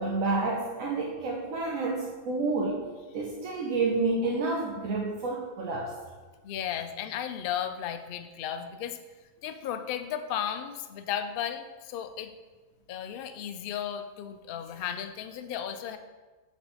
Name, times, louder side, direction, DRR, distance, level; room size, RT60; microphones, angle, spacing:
voice 1, 0.0-2.9 3.1-5.9, right 3 dB, 75° right, -3 dB, 1.2 m, -29 dB
voice 2, 6.4-9.0 9.4-12.3 12.9-16.0, left 9 dB, 80° left, 8 dB, 0.5 m, -34 dB
8.1 x 3.5 x 4.1 m, 1.3 s
omnidirectional pair, 1.5 m